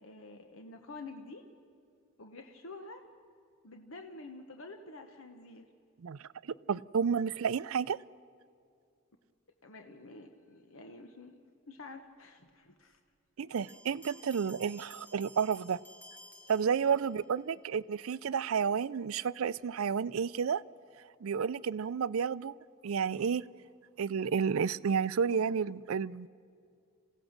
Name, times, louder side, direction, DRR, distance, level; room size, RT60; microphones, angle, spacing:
voice 1, 0.0-1.5 2.2-3.1 3.6-5.6 9.6-11.4 11.7-13.0, left 3 dB, 70° left, 1.1 m, -48 dB
voice 2, 6.0-8.0 13.4-15.8 16.5-20.6 21.2-22.6 22.8-23.4 24.0-26.3, right 6 dB, 75° right, 0.4 m, -31 dB
Bell, 13.6-17.3, equal, 10° left, 1.4 m, -55 dB
27.5 x 16.5 x 6.5 m
head